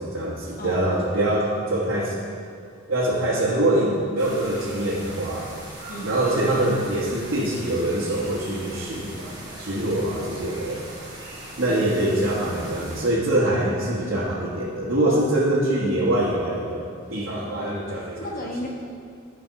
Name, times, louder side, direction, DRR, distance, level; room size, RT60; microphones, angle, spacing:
voice 1, 0.0-2.1 2.9-5.5 6.0-10.8 11.6-16.8 17.1-18.2, right 1 dB, 75° right, -8 dB, 1.4 m, -24 dB
voice 2, 0.6-1.3 5.9-6.2 9.8-10.3 11.7-11.8 15.0-15.3 17.1-17.3 18.2-18.7, left 1 dB, 45° left, 0 dB, 1.1 m, -35 dB
sound 1, 4.2-13.1, right 1 dB, 20° right, 1.7 m, -40 dB
11.0 x 4.6 x 5.7 m, 2.4 s
head